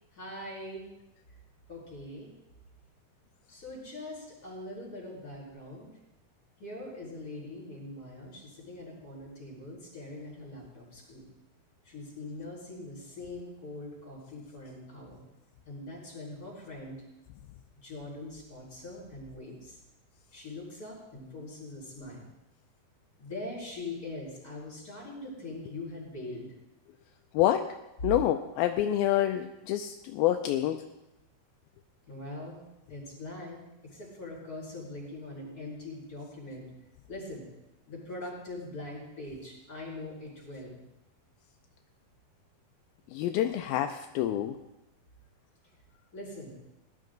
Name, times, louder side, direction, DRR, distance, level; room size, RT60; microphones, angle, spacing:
voice 1, 0.1-0.9 1.7-2.3 3.5-5.9 6.6-11.3 11.9-15.2 15.7-17.0 17.8-19.8 20.3-22.3 23.2-26.5 32.1-32.6 32.9-36.7 37.1-37.4 37.9-40.8 46.1-46.5, left 2 dB, 25° left, -3 dB, 5.3 m, -42 dB
voice 2, 27.3-27.7 28.0-30.8 43.1-44.6, left 12 dB, 80° left, 6 dB, 2.3 m, -27 dB
18.0 x 11.5 x 3.9 m, 0.92 s
omnidirectional pair, 4.4 m